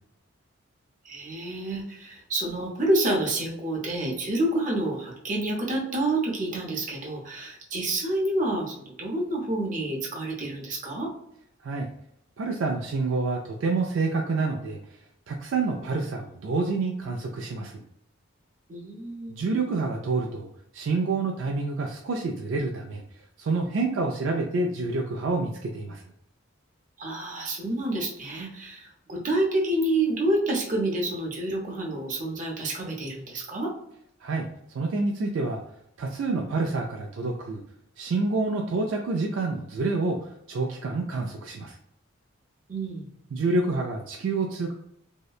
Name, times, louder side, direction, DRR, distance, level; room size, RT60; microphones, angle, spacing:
voice 1, 1.0-11.1 18.7-19.5 27.0-33.7 42.7-43.0, right 1 dB, 40° right, -2 dB, 0.7 m, -28 dB
voice 2, 12.4-14.8 15.3-17.8 19.3-20.5 20.7-23.0 23.4-26.0 34.2-35.6 36.0-37.6 38.0-41.8 43.3-44.7, right 3 dB, 65° right, 1 dB, 0.3 m, -28 dB
2.7 x 2.1 x 2.3 m, 0.75 s
head